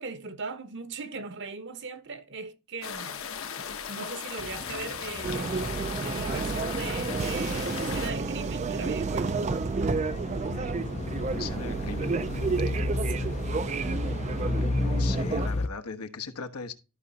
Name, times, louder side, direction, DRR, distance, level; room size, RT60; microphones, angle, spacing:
voice 1, 0.0-3.2 3.9-5.5 6.0-9.3 13.1-13.3, right 4 dB, 55° right, 1.0 m, -39 dB
sound 1, 2.8-8.1, left 7 dB, 65° left, 1.0 m, -37 dB
sound 2, 4.4-15.7, left 2 dB, 30° left, 0.4 m, -34 dB
sound 3, 5.2-15.5, right 4 dB, 30° right, 0.4 m, -30 dB
voice 2, 11.3-12.2 14.6-16.7, left 5 dB, 85° left, 1.1 m, -38 dB
13.5 x 5.2 x 2.7 m
head